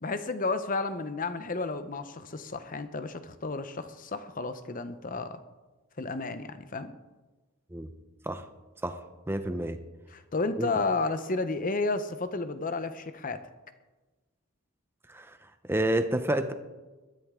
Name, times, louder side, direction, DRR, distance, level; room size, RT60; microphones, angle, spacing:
voice 1, 0.0-5.4 6.0-6.9 10.1-13.4, left 3 dB, 40° left, 11 dB, 0.8 m, -32 dB
voice 2, 9.3-9.8 10.6-10.7 15.1-15.4 15.7-16.5, right 1 dB, 10° right, 8 dB, 0.7 m, -29 dB
21.0 x 13.0 x 3.7 m, 1.2 s
head